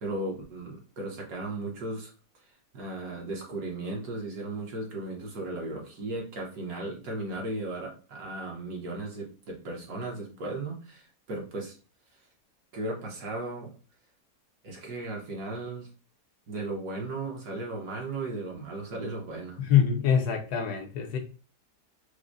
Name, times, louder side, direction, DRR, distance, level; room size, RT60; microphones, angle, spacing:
voice 1, 0.0-2.1 2.7-11.8 12.7-13.8 14.6-15.9 16.5-19.6, right 2 dB, 65° right, -1 dB, 1.4 m, -36 dB
voice 2, 19.6-21.2, left 8 dB, 75° left, 4 dB, 1.2 m, -24 dB
4.7 x 2.0 x 2.5 m, 0.36 s
omnidirectional pair, 1.7 m